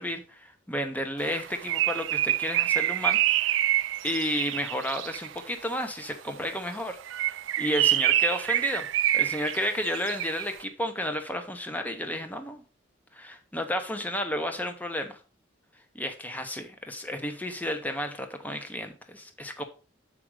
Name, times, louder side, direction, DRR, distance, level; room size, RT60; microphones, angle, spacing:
voice 1, 0.0-3.6 4.0-8.9 9.1-12.6 13.1-15.2 15.9-19.6, left 1 dB, 10° left, 7 dB, 0.8 m, -32 dB
Bird, 1.3-5.4 7.0-10.5, right 13 dB, 70° right, 0.3 m, -26 dB
7.7 x 4.9 x 4.8 m, 0.35 s
head